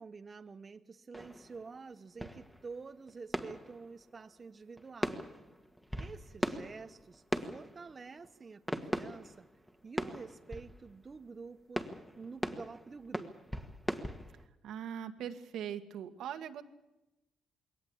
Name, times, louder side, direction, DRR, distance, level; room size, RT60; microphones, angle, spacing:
voice 1, 0.0-5.3 6.0-9.5 9.8-13.3, right 4 dB, 35° right, 0.9 m, -48 dB
sound 1, 1.1-4.5 4.8-11.3 11.8-14.5, equal, 5° left, 1.9 m, -40 dB
voice 2, 14.6-16.6, right 9 dB, 80° right, 1.8 m, -41 dB
22.0 x 18.0 x 8.6 m
cardioid pair, 90°, 0 cm